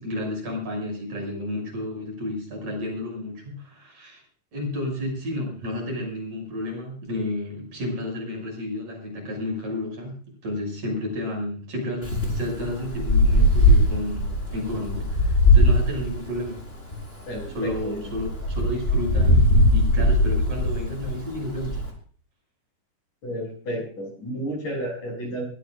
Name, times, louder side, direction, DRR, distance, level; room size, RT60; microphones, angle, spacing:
voice 1, 0.0-4.2 4.5-10.1 10.4-16.6 17.5-21.8, left 1 dB, 40° right, -1 dB, 7.6 m, -31 dB
Wind, 12.0-21.9, left 1 dB, 15° left, 4.2 m, -21 dB
voice 2, 17.3-18.0 23.2-25.5, equal, 40° left, 1 dB, 7.8 m, -32 dB
22.5 x 15.5 x 2.5 m, 0.42 s
omnidirectional pair, 5.2 m